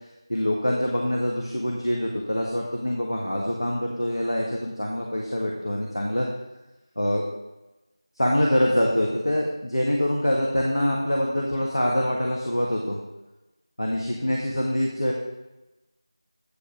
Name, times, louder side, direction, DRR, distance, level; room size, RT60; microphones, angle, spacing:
voice 1, 0.3-6.3 7.0-7.2 8.2-13.0 13.8-15.1, left 1 dB, 70° left, -2 dB, 1.4 m, -25 dB
8.5 x 5.1 x 5.0 m, 1.0 s
figure-of-eight pair, 170°, 3 cm